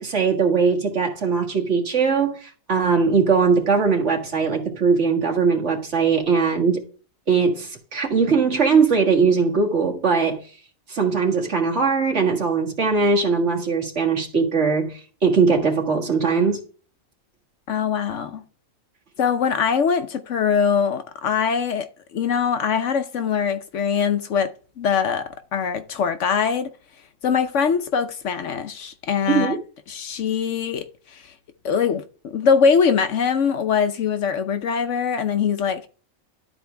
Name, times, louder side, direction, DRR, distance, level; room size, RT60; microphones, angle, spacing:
voice 1, 0.0-6.8 7.3-10.4 10.9-14.9 15.2-16.6 29.3-29.6, right 5 dB, 55° right, 2.0 m, -20 dB
voice 2, 17.7-18.4 19.2-26.7 27.2-29.5 29.9-31.3 31.6-35.9, left 6 dB, 65° left, 1.0 m, -22 dB
12.0 x 4.4 x 3.3 m
omnidirectional pair, 1.5 m